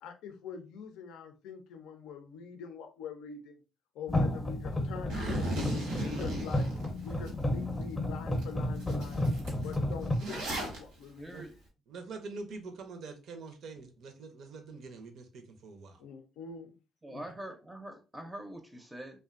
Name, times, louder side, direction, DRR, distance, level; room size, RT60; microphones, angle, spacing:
voice 1, 0.0-3.6 3.9-5.6 5.9-6.7 7.0-9.3 9.6-11.5 16.0-16.7 17.1-17.2, left 6 dB, 80° left, 0.4 m, -44 dB
sound 1, 4.1-10.2, left 1 dB, 20° left, 0.6 m, -32 dB
Zipper (clothing), 5.1-7.3 7.8-7.9 8.4-8.5 8.7-10.8, right 1 dB, 85° right, 0.9 m, -36 dB
voice 2, 11.2-11.5 17.0-19.2, right 1 dB, 15° right, 0.5 m, -44 dB
voice 3, 11.9-16.0, right 3 dB, 70° right, 0.5 m, -45 dB
2.5 x 2.1 x 2.4 m
supercardioid pair, 65°, 0 cm